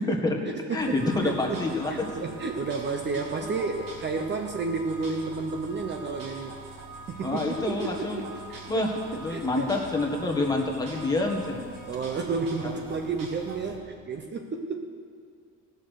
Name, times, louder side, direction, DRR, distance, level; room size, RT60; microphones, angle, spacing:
voice 1, 0.0-6.6 7.1-9.7 11.9-14.9, right 4 dB, 35° right, 4 dB, 0.8 m, -32 dB
voice 2, 0.7-1.9 7.2-8.2 8.7-8.9 9.2-11.6 12.7-12.8, left 2 dB, 10° left, 0 dB, 1.7 m, -27 dB
sound 1, 0.8-13.8, right 2 dB, 75° right, 2.7 m, -43 dB
16.0 x 6.6 x 6.4 m, 2.1 s
cardioid pair, 115°, 33 cm